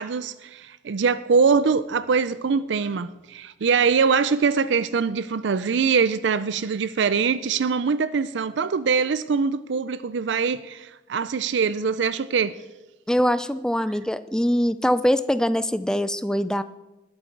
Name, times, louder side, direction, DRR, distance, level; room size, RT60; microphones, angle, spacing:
voice 1, 0.0-12.5, right 5 dB, 70° right, 0.4 m, -23 dB
voice 2, 13.1-16.6, equal, 5° left, 0.4 m, -23 dB
19.5 x 8.1 x 4.6 m
head